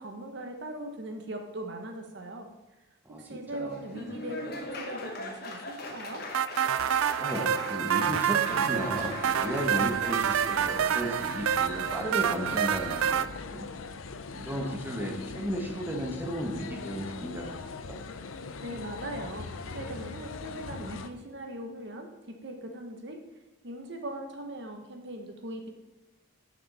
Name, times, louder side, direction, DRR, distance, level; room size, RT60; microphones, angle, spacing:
voice 1, 0.0-2.5 3.2-4.4 4.7-6.2 18.6-22.1 22.4-23.2 23.6-25.7, right 1 dB, 55° right, 4 dB, 1.0 m, -40 dB
voice 2, 3.0-3.8 7.2-13.7 14.3-17.6 17.9-18.0, equal, 10° right, 0 dB, 1.2 m, -34 dB
Laughter / Applause, 3.6-11.5, left 2 dB, 45° left, 1.2 m, -41 dB
sound 1, 6.3-13.3, right 9 dB, 80° right, 0.4 m, -27 dB
sound 2, 8.5-21.1, left 4 dB, 75° left, 0.6 m, -41 dB
10.0 x 6.2 x 4.1 m, 1.2 s
head